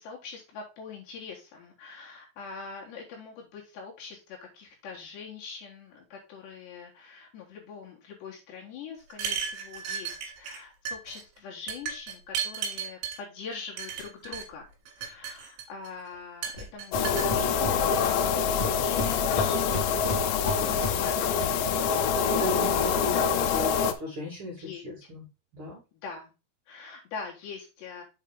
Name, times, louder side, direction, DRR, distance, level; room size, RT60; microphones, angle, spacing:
voice 1, 0.0-14.7 15.0-17.1 17.4-22.1 24.6-24.8 25.9-26.3 26.7-28.0, left 5 dB, 65° left, -1 dB, 3.5 m, -43 dB
sound 1, 9.1-10.6 10.9-11.2 11.7-13.2 13.8-14.5 14.9-15.9 16.4-17.3, right 7 dB, 70° right, 4.1 m, -34 dB
Hammer, 16.6-16.7 16.9-18.2 18.6-21.2, left 1 dB, 15° left, 3.0 m, -35 dB
sound 2, 16.9-23.9, left 6 dB, 80° left, 2.5 m, -25 dB
voice 2, 22.3-25.2 25.5-25.8, left 1 dB, 30° right, -4 dB, 3.0 m, -36 dB
7.5 x 5.4 x 3.6 m, 0.29 s
omnidirectional pair, 5.8 m